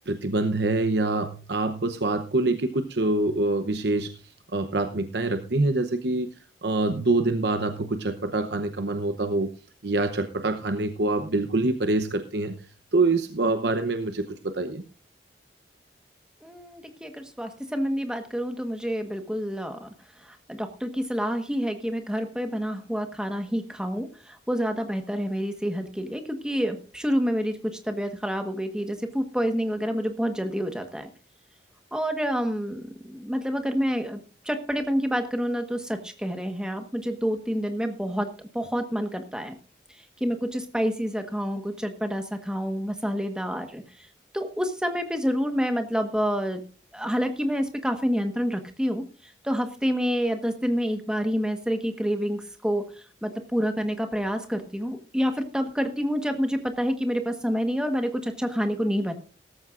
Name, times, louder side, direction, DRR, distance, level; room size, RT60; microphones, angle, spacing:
voice 1, 0.1-4.1 4.5-6.3 6.6-9.5 9.8-12.6 12.9-14.8, right 2 dB, 75° right, 8 dB, 0.9 m, -25 dB
voice 2, 16.4-19.9 20.2-27.6 27.8-31.1 31.9-38.3 38.5-39.5 40.0-44.1 44.3-46.6 46.9-59.1, equal, 5° right, 6 dB, 1.3 m, -28 dB
17.0 x 14.0 x 2.5 m, 0.35 s
head